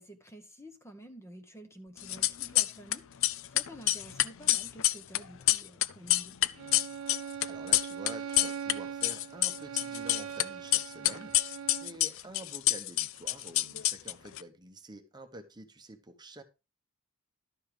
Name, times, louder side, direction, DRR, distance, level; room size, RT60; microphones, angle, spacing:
voice 1, 0.0-6.4, right 1 dB, 15° left, 1.0 m, -50 dB
sound 1, 2.0-3.0 3.2-8.7 9.0-10.4 10.7-14.4, left 15 dB, 65° left, 0.5 m, -27 dB
Bowed string instrument, 6.6-12.0, right 7 dB, 70° right, 0.5 m, -41 dB
voice 2, 7.5-16.4, right 2 dB, 20° right, 1.0 m, -48 dB
12.0 x 5.6 x 4.9 m
head